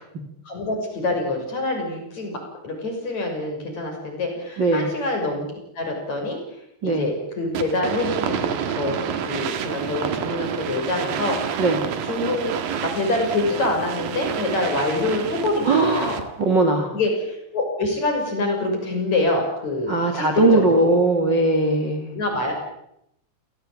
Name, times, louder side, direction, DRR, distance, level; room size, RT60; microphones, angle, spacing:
voice 1, 0.5-5.5 5.8-6.4 6.8-11.6 12.0-16.2 16.9-21.0 22.1-22.5, left 2 dB, 40° left, 3 dB, 7.4 m, -26 dB
voice 2, 4.6-4.9 6.8-7.1 11.6-11.8 15.6-16.9 19.9-22.1, right 2 dB, 30° right, 5 dB, 2.4 m, -20 dB
sound 1, 7.6-16.5, right 8 dB, 60° right, 3.1 m, -29 dB
28.0 x 18.0 x 8.9 m, 0.79 s
omnidirectional pair, 5.1 m